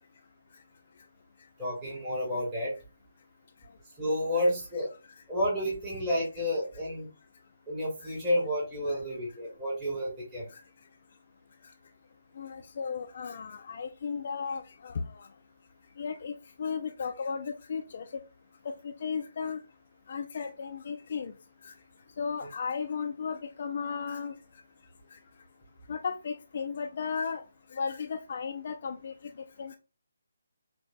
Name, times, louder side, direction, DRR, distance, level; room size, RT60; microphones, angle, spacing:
voice 1, 1.6-2.7 4.0-4.9 5.3-7.1 7.7-10.5, left 1 dB, 15° right, -7 dB, 1.4 m, -30 dB
voice 2, 12.4-15.0 16.0-18.2 18.8-19.6 20.1-21.3 21.6-21.7 22.2-24.3 25.9-27.4 27.7-29.1 29.6-29.8, left 6 dB, 50° left, 6 dB, 0.4 m, -35 dB
5.6 x 2.2 x 2.6 m, 0.31 s
figure-of-eight pair, 155°, 0 cm